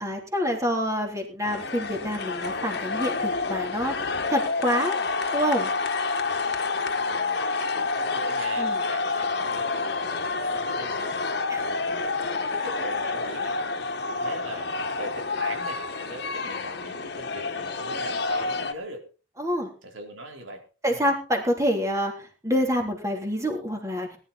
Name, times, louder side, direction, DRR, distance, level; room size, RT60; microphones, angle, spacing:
voice 1, 0.0-5.0 5.3-5.7 8.6-8.8 11.5-11.7 19.4-19.7 20.8-24.1, equal, 15° right, 2 dB, 3.4 m, -27 dB
sound 1, 1.4-18.7, left 3 dB, 55° left, 1.7 m, -28 dB
voice 2, 6.8-7.4 7.7-11.2 11.7-13.6 14.1-19.0 19.8-20.6 20.9-21.1, right 1 dB, 85° right, 2 dB, 4.3 m, -41 dB
19.5 x 11.5 x 4.2 m, 0.35 s
head